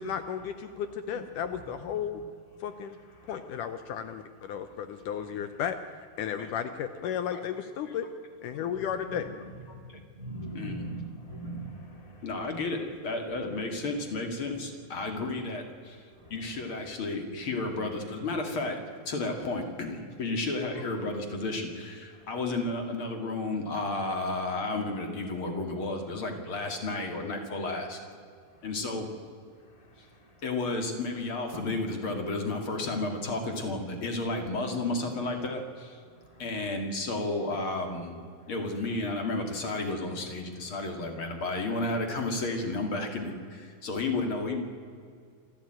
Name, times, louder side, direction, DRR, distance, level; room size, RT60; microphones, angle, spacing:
voice 1, 0.0-2.2 2.6-3.0 3.3-8.1 8.4-9.3, left 8 dB, 75° left, 10 dB, 2.2 m, -34 dB
voice 2, 3.2-3.5 8.6-12.6 13.4-13.5 16.1-16.7 20.7-20.9 22.2-22.3 28.5-28.7 29.7-30.4 31.5-31.7 36.1-36.8, right 1 dB, 30° right, 3 dB, 0.6 m, -43 dB
voice 3, 10.5-10.9 12.2-16.0 16.3-18.8 19.1-28.0 28.6-29.1 30.4-36.0 36.4-38.2 38.5-44.6, left 2 dB, 40° left, 4 dB, 2.9 m, -32 dB
27.0 x 13.0 x 9.1 m, 2.3 s
omnidirectional pair, 4.1 m